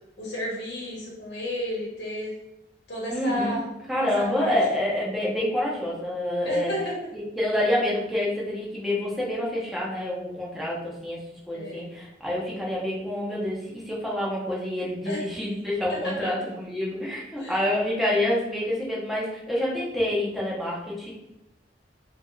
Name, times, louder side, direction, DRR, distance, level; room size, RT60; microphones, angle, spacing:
voice 1, 0.2-2.3 2.9-3.6 4.1-4.6 6.4-6.9 11.5-11.9 15.0-15.2 15.9-16.1 17.4-17.5, left 1 dB, 75° left, -4 dB, 1.1 m, -32 dB
voice 2, 3.1-3.6 3.9-6.7 7.1-11.2 11.5-21.1, left 1 dB, ahead, -6 dB, 0.9 m, -27 dB
4.6 x 2.7 x 2.4 m, 0.90 s
head